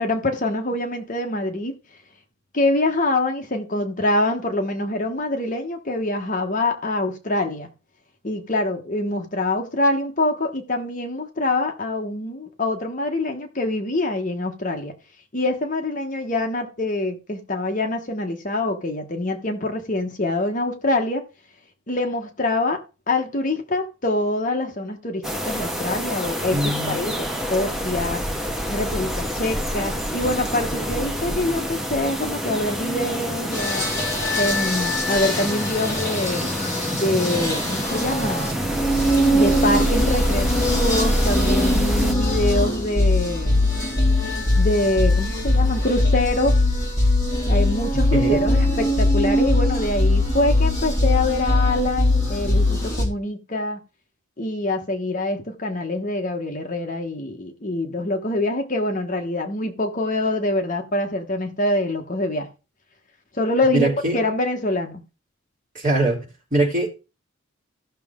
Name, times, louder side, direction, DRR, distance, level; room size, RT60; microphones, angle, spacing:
voice 1, 0.0-1.8 2.5-7.7 8.2-14.9 15.3-21.2 21.9-22.8 23.1-28.2 28.7-33.9 34.4-38.5 39.3-43.6 44.5-46.6 47.5-53.8 54.4-62.5 63.4-65.0, left 2 dB, 40° left, 1.2 m, -25 dB
sound 1, 25.2-42.1, equal, ahead, 1.0 m, -28 dB
voice 2, 26.5-27.3 48.1-48.4 63.7-64.2 65.7-66.2 66.5-66.9, right 2 dB, 35° right, 3.4 m, -22 dB
sound 2, 33.5-53.1, left 1 dB, 15° left, 3.7 m, -21 dB
15.0 x 6.3 x 3.7 m
head